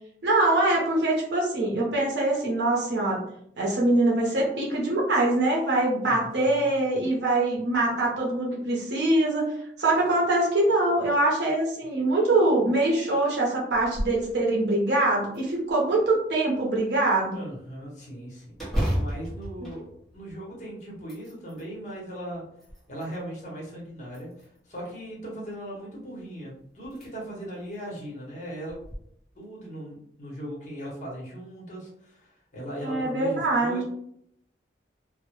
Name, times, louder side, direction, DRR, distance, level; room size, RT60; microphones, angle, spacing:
voice 1, 0.2-3.2 3.6-9.5 9.8-17.4 32.8-33.8, right 2 dB, 75° right, -3 dB, 0.6 m, -23 dB
voice 2, 6.0-6.7 17.3-22.4 22.9-28.8 29.3-33.8, right 1 dB, 40° left, -4 dB, 0.8 m, -39 dB
sound 1, 13.7-14.2 14.7-14.8 15.3-16.1 18.5-20.5 20.9-21.7 22.3-23.2 24.1-24.7 26.2-26.3 26.8-27.1 27.5-27.6 28.7-29.0, equal, ahead, 0.7 m, -32 dB
2.0 x 2.0 x 3.0 m, 0.72 s
head